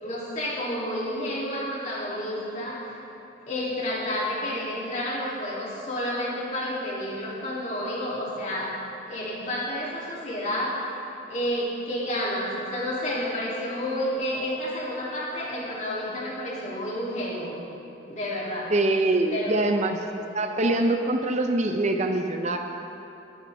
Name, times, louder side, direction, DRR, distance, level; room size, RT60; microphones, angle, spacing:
voice 1, 0.0-3.0 3.5-8.7 9.1-11.0 11.3-17.5 18.1-18.7 19.3-19.7, left 1 dB, 40° left, -6 dB, 2.9 m, -30 dB
voice 2, 18.7-22.6, right 2 dB, 40° right, 5 dB, 0.6 m, -24 dB
20.5 x 9.3 x 3.5 m, 2.9 s
head